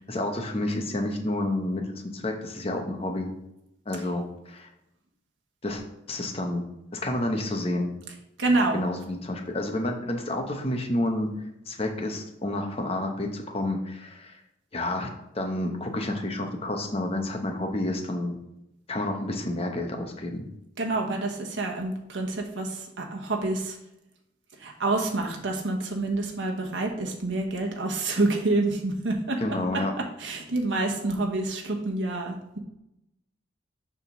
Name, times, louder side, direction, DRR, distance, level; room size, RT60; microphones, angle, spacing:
voice 1, 0.1-3.3 3.9-4.7 5.6-5.8 6.1-6.6 6.9-7.9 8.7-11.3 11.7-14.4 14.7-18.4 18.9-20.5 29.4-29.9, left 1 dB, 30° left, 3 dB, 1.0 m, -29 dB
voice 2, 8.4-8.8 20.8-23.8 24.6-29.4 30.2-32.6, right 2 dB, 80° right, 1 dB, 1.1 m, -27 dB
6.8 x 3.8 x 6.0 m, 0.86 s
head